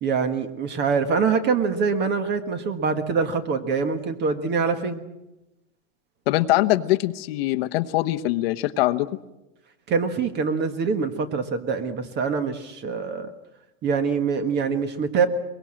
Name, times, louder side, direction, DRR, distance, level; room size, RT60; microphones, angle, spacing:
voice 1, 0.0-5.0 9.9-13.3 13.8-15.3, right 5 dB, 25° right, 9 dB, 1.5 m, -24 dB
voice 2, 6.3-9.1, left 16 dB, 50° left, 12 dB, 1.1 m, -22 dB
23.0 x 21.5 x 7.7 m, 0.96 s
hypercardioid pair, 140°, 39 cm